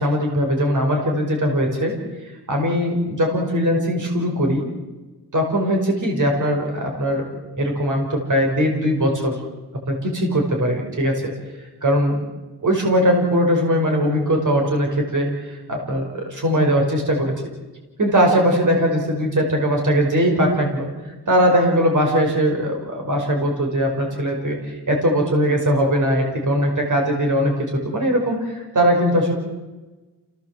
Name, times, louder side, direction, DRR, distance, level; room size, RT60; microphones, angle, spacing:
voice 1, 0.0-1.9 2.5-4.7 5.3-7.3 7.6-9.4 9.9-11.3 11.8-12.2 12.6-17.3 18.0-29.3, equal, 50° right, 1 dB, 5.4 m, -20 dB
28.5 x 17.5 x 7.7 m, 1.2 s
wide cardioid pair, 110°, 40 cm